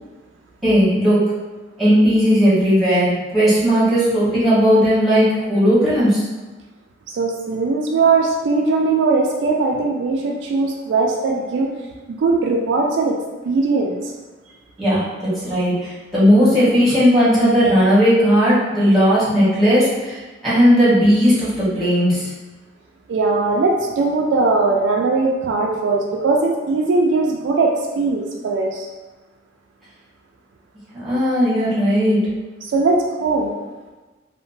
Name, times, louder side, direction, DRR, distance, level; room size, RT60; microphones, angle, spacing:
voice 1, 0.6-1.2 1.8-6.2 14.8-22.3 30.9-32.2, equal, ahead, -12 dB, 1.1 m, -16 dB
voice 2, 7.1-11.7 12.1-13.2 13.4-14.0 23.1-28.9 32.6-33.6, right 3 dB, 70° right, 0 dB, 0.3 m, -19 dB
2.8 x 2.1 x 2.6 m, 1.2 s
head